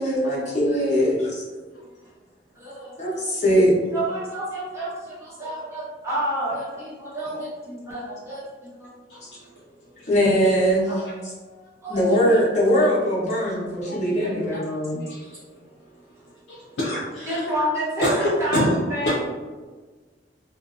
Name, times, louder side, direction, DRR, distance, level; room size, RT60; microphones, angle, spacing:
voice 1, 0.0-1.3 3.0-3.7 10.1-10.9 11.9-15.0, equal, 40° left, -6 dB, 0.8 m, -21 dB
voice 2, 1.7-2.1 5.4-5.5 7.3-7.4 9.1-10.1 11.0-11.1 15.0-17.5 18.0-18.8 19.0-19.1, left 1 dB, 85° left, -6 dB, 0.5 m, -28 dB
voice 3, 2.5-3.4 3.9-8.9 10.9-11.1 11.4-12.4 13.9-14.6 14.9-15.1 15.4-15.5 17.3-18.1 18.4-18.6 18.9-19.1, right 1 dB, 15° right, -9 dB, 0.8 m, -30 dB
2.5 x 2.1 x 2.4 m, 1.4 s
head